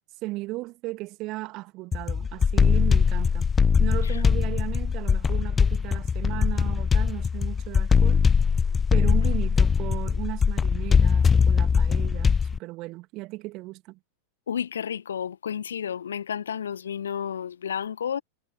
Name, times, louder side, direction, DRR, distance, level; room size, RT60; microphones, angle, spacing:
voice 1, 0.2-3.5 3.8-8.2 8.9-14.0, right 20 dB, 40° right, 2.6 m, -36 dB
sound 1, 1.9-12.6, left 6 dB, 20° left, 0.8 m, -21 dB
voice 2, 14.5-18.2, left 8 dB, 65° left, 1.5 m, -31 dB
figure-of-eight pair, 90°, 0 cm